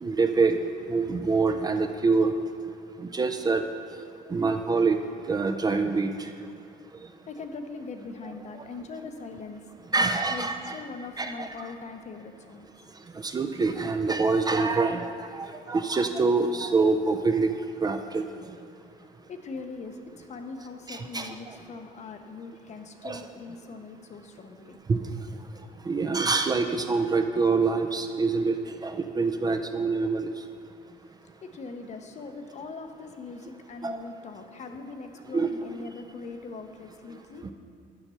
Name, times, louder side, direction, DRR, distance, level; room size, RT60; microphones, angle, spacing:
voice 1, 0.0-0.6 0.9-2.3 3.0-3.6 4.3-5.0 5.3-6.3 9.9-10.8 11.2-11.5 13.2-17.5 17.8-18.2 20.9-21.3 23.0-23.2 24.9-25.0 25.9-30.3 33.8-34.0 35.3-35.5, right 4 dB, 25° right, 7 dB, 0.4 m, -25 dB
voice 2, 7.3-9.6 10.0-12.7 19.3-24.8 31.4-37.5, left 4 dB, 45° left, 6 dB, 0.7 m, -41 dB
7.0 x 5.8 x 6.8 m, 2.3 s
cardioid pair, 110°, 17 cm